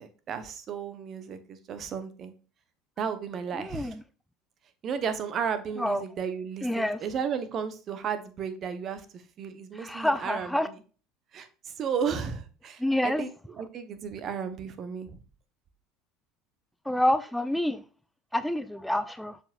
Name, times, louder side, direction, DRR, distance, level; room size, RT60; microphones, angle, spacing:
voice 1, 0.0-2.3 3.0-4.0 4.8-10.5 11.3-15.2, right 7 dB, 45° right, 1.0 m, -34 dB
voice 2, 3.6-4.0 5.8-6.0 6.6-7.0 9.8-10.7 12.8-13.2 16.9-17.8 18.3-19.4, left 1 dB, 5° left, 0.4 m, -27 dB
7.0 x 5.4 x 2.5 m
hypercardioid pair, 75°, 0 cm